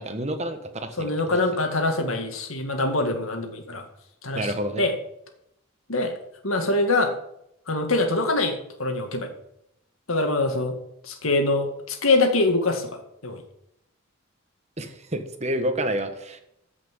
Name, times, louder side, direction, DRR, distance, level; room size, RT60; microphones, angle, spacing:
voice 1, 0.0-1.4 4.3-4.8 14.8-16.4, right 1 dB, 30° right, 7 dB, 1.3 m, -29 dB
voice 2, 1.0-3.8 4.2-4.5 4.8-4.9 5.9-6.1 6.4-7.1 7.7-9.3 10.1-10.8 11.0-12.9 13.2-13.4, left 2 dB, 85° left, 5 dB, 2.1 m, -24 dB
14.5 x 6.0 x 7.4 m, 0.79 s
head